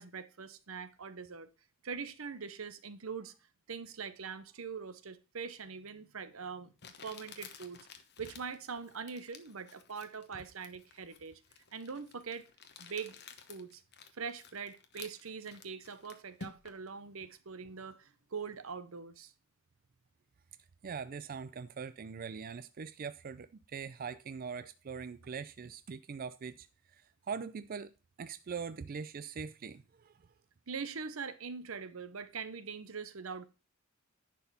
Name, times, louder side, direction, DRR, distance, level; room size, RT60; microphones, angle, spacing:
voice 1, 0.0-1.5 1.8-3.3 3.7-6.7 7.0-7.8 8.2-11.4 11.7-12.5 12.8-13.1 13.5-13.8 14.1-19.3 30.7-33.5, right 5 dB, 85° right, 0.9 m, -42 dB
Crumpling crinkling, 5.9-6.0 6.8-16.9, left 5 dB, 55° left, 1.1 m, -53 dB
voice 2, 20.8-26.7 27.3-30.1, right 6 dB, 45° right, 0.4 m, -42 dB
10.5 x 4.6 x 5.6 m
head